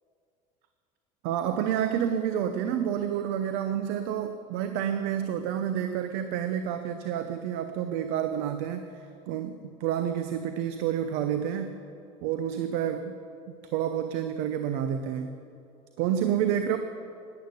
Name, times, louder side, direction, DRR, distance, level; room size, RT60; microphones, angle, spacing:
voice 1, 1.2-11.7 12.2-13.2 13.7-15.3 16.0-16.8, right 9 dB, 70° right, 8 dB, 0.7 m, -29 dB
11.0 x 10.5 x 8.3 m, 2.6 s
supercardioid pair, 85°, 17 cm